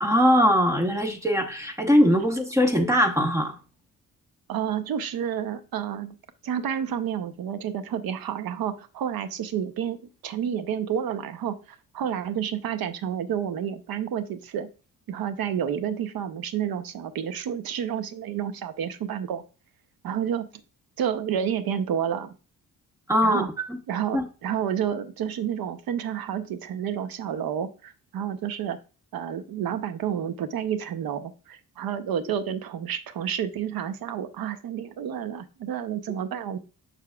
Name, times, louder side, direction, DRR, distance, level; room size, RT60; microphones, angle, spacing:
voice 1, 0.0-3.6 23.1-23.8 24.1-24.2, equal, 10° right, 4 dB, 0.9 m, -21 dB
voice 2, 4.5-6.2 6.4-10.0 10.2-11.6 11.9-14.7 15.1-19.4 20.0-20.5 21.0-22.3 23.2-23.5 23.9-28.8 29.1-36.6, right 9 dB, 90° right, 11 dB, 0.7 m, -30 dB
6.7 x 6.2 x 2.3 m, 0.34 s
wide cardioid pair, 145°, 35 cm